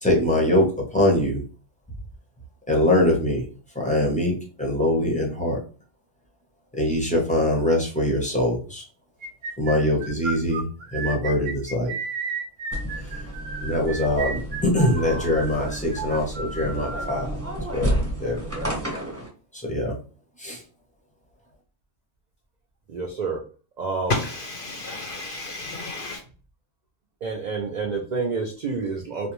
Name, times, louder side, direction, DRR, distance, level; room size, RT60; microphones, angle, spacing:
voice 1, 0.0-0.7 0.9-1.4 2.7-3.5 3.7-5.6 6.7-8.8 9.6-11.9 13.0-13.2 13.6-17.4 17.7-18.4 19.5-20.0 20.4-20.6, left 1 dB, 10° left, -1 dB, 0.5 m, -23 dB
sound 1, 9.2-17.2, right 4 dB, 60° right, 0.7 m, -33 dB
sound 2, 12.7-19.3, right 1 dB, 10° right, 0.9 m, -31 dB
voice 2, 18.5-18.9 22.9-23.4 23.8-24.1 27.2-29.3, right 4 dB, 80° right, 1 dB, 0.4 m, -29 dB
voice 3, 24.1-26.2, left 2 dB, 60° left, 1 dB, 0.6 m, -30 dB
2.5 x 2.1 x 2.9 m, 0.37 s
omnidirectional pair, 1.3 m